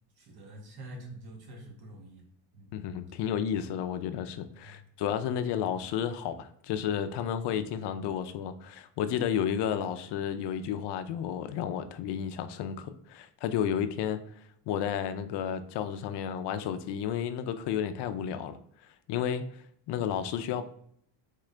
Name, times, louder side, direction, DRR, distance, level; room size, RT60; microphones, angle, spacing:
voice 1, 0.2-2.2 2.5-2.7 4.6-4.8, right 1 dB, 50° right, 1 dB, 1.5 m, -46 dB
voice 2, 2.7-14.2 14.7-18.6 19.1-20.7, left 9 dB, 65° left, 10 dB, 0.6 m, -32 dB
3.7 x 3.7 x 3.2 m, 0.67 s
cardioid pair, 125°, 46 cm